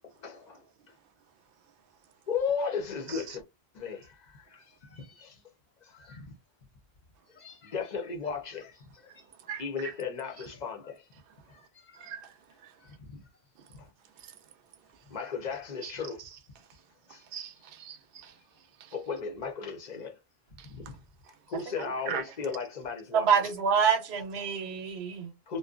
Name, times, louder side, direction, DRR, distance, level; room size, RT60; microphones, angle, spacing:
voice 1, 0.2-0.6 2.3-3.4 3.7-5.4 5.8-6.3 7.3-8.8 9.0-9.1 9.5-11.0 11.5-12.1 12.8-13.2 15.1-16.2 17.1-17.2 18.9-20.2 20.7-21.0 21.5-23.5 25.5-25.6, left 5 dB, 50° left, 0.8 m, -36 dB
voice 2, 9.5-9.9 11.9-12.3 12.6-12.7 15.8-15.9 17.3-18.3 18.8-18.9 20.6-20.7 22.1-22.2, right 7 dB, 65° right, 0.7 m, -40 dB
voice 3, 23.1-25.3, right 6 dB, 85° right, 1.0 m, -26 dB
2.6 x 2.2 x 2.4 m
omnidirectional pair, 1.1 m